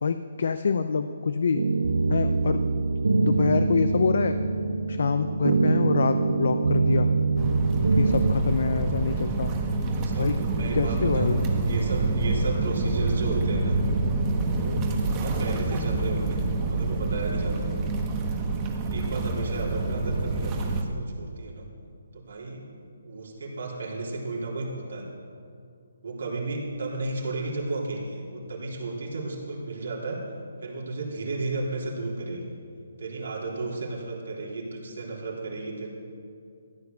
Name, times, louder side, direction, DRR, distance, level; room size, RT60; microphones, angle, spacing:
voice 1, 0.0-1.6 2.1-2.6 3.1-4.4 4.9-7.1 7.9-9.5 10.2-10.3 10.7-11.5, left 5 dB, 65° left, 10 dB, 0.6 m, -26 dB
sound 1, 1.6-8.3, right 3 dB, 85° right, 0.6 m, -24 dB
sound 2, 7.4-20.8, right 3 dB, 20° right, 1.2 m, -27 dB
voice 2, 9.9-13.8 14.5-14.9 15.1-17.6 18.9-21.7 22.1-22.6 23.0-25.1 26.0-30.2 30.6-32.5 33.0-35.9, right 3 dB, 70° right, -3 dB, 3.4 m, -33 dB
14.0 x 8.4 x 6.8 m, 2.5 s
hypercardioid pair, 165°, 0 cm